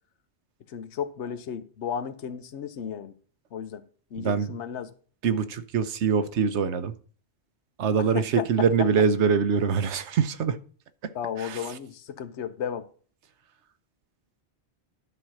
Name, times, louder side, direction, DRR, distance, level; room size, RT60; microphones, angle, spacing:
voice 1, 0.7-3.1 3.5-3.8 4.1-4.9 8.0-8.9 11.1-12.9, left 8 dB, 90° left, 1.1 m, -34 dB
voice 2, 4.2-4.5 5.2-6.9 7.8-10.6 11.0-11.1 11.4-11.6, right 6 dB, 90° right, 1.1 m, -24 dB
11.5 x 4.4 x 6.2 m
omnidirectional pair, 1.1 m